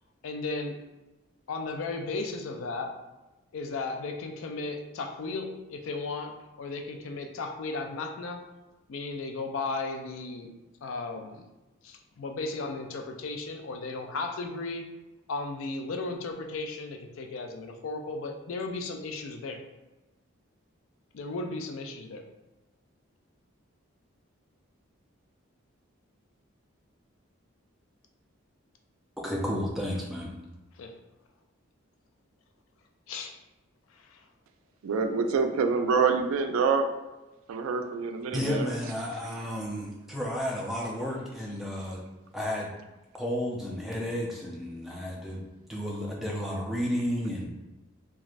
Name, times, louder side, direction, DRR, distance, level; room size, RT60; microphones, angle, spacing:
voice 1, 0.2-0.8 1.5-3.0 3.5-8.5 8.9-10.5 10.8-11.4 11.8-14.9 15.3-19.6 21.1-22.2 30.8-30.9 33.1-33.4 33.9-34.2, left 3 dB, 75° left, 4 dB, 0.4 m, -35 dB
voice 2, 29.2-30.3 38.3-42.0 42.3-42.7 43.2-45.4 45.7-47.5, equal, ahead, -3 dB, 0.4 m, -32 dB
voice 3, 34.8-36.9 37.5-38.7, right 5 dB, 85° right, 6 dB, 0.3 m, -26 dB
3.0 x 2.4 x 2.5 m, 1.1 s
head